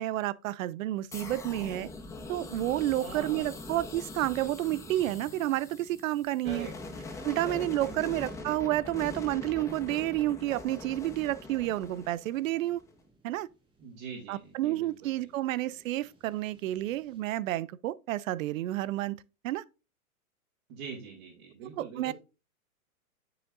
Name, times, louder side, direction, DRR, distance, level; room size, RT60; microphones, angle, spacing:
voice 1, 0.0-1.9 2.3-6.7 7.2-12.8 13.2-13.5 14.3-19.6 21.6-22.1, right 15 dB, 65° right, 0.5 m, -30 dB
sound 1, 1.0-17.2, right 1 dB, 10° right, 1.7 m, -58 dB
sound 2, 1.1-12.9, left 3 dB, 5° left, 0.5 m, -43 dB
voice 2, 3.0-3.6 6.4-6.7 7.4-8.4 13.8-15.3 20.7-22.1, right 5 dB, 45° right, 2.5 m, -43 dB
9.7 x 5.0 x 2.4 m
hypercardioid pair, 135°, 43 cm